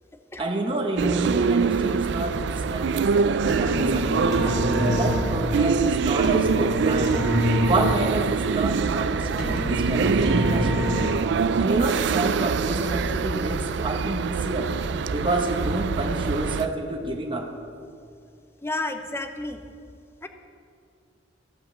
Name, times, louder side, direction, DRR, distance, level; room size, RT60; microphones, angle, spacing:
voice 1, 0.4-7.2 7.6-11.0 11.6-14.7 15.1-17.5, right 2 dB, 25° right, 2 dB, 0.9 m, -28 dB
sound 1, 1.0-16.7, right 5 dB, 65° right, 0.4 m, -24 dB
sound 2, 3.5-11.5, left 2 dB, 40° left, 2.5 m, -28 dB
voice 2, 18.6-19.6 20.2-20.3, left 2 dB, 15° left, 7 dB, 0.6 m, -31 dB
15.0 x 5.8 x 7.4 m, 2.4 s
head